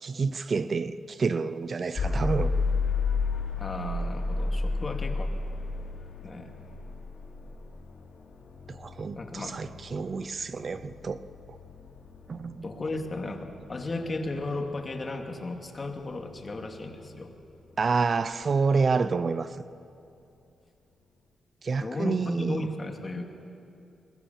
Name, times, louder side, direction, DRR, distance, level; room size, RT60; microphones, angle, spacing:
voice 1, 0.0-2.5 8.7-11.2 12.3-12.6 17.8-19.6 21.6-22.6, right 4 dB, 45° right, 0.6 m, -28 dB
sound 1, 2.0-17.9, left 3 dB, 70° left, 2.9 m, -33 dB
voice 2, 3.6-5.3 6.2-6.5 9.1-9.6 12.6-17.3 21.8-23.3, left 2 dB, 35° left, 2.4 m, -35 dB
22.0 x 21.5 x 7.3 m
cardioid pair, 80°, 0 cm